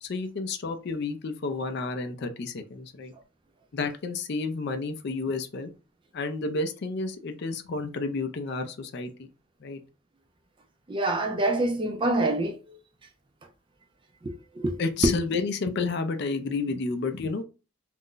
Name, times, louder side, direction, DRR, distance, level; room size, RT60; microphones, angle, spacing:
voice 1, 0.0-3.1 3.7-5.7 6.1-9.3 9.6-9.8 14.8-17.4, left 3 dB, 50° left, 0.4 m, -31 dB
voice 2, 10.9-12.8 14.2-14.8, right 2 dB, 25° right, 0.3 m, -26 dB
2.5 x 2.1 x 3.7 m
head